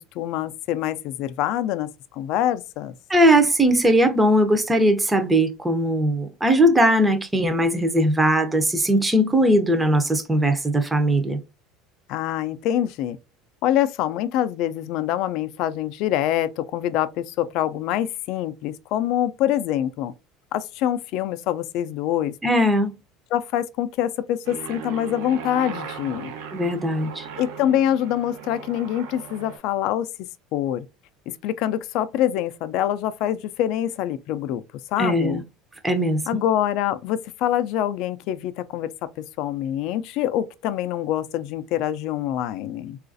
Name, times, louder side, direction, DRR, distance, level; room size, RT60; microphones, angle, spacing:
voice 1, 0.2-1.9 2.1-2.9 12.1-13.2 13.6-20.1 20.5-22.3 23.3-26.3 27.4-30.1 30.5-30.9 31.4-34.6 34.9-35.4 36.3-38.9 39.4-43.0, left 11 dB, 60° left, 0.3 m, -25 dB
voice 2, 3.1-11.4 22.4-22.9 26.5-27.3 35.0-35.4 35.8-36.4, equal, 10° right, 0.5 m, -19 dB
Aircraft, 24.5-29.6, right 7 dB, 85° right, 0.7 m, -37 dB
3.9 x 2.4 x 2.5 m
cardioid pair, 150°, 0 cm